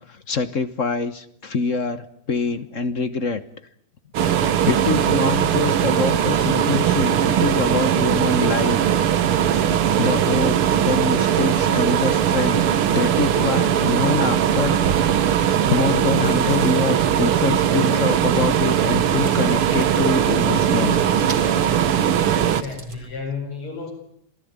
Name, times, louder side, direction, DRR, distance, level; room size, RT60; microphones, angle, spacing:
voice 1, 0.1-3.4 4.2-8.8 10.0-15.1 15.7-21.6, left 4 dB, 45° left, 13 dB, 1.2 m, -25 dB
sound 1, 4.1-22.6, right 9 dB, 80° right, 2.1 m, -19 dB
Chewing mastication, 15.0-23.1, right 3 dB, 20° right, 3.0 m, -39 dB
voice 2, 22.4-23.9, left 5 dB, 80° left, 5 dB, 5.9 m, -32 dB
27.0 x 18.5 x 9.6 m, 0.68 s
omnidirectional pair, 2.4 m